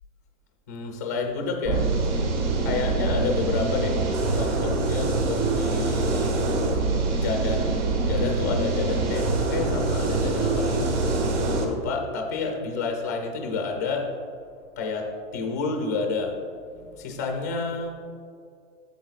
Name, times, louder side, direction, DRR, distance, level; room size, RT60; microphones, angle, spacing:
voice 1, 0.7-1.9 2.6-4.0 4.3-6.3 7.1-7.8 8.0-10.9 11.5-14.2 14.8-16.4 17.0-18.0, left 4 dB, 15° left, 2 dB, 0.3 m, -29 dB
sound 1, 1.6-11.6, right 3 dB, 60° right, 1.6 m, -24 dB
12.0 x 7.7 x 2.3 m, 2.3 s
hypercardioid pair, 150°, 41 cm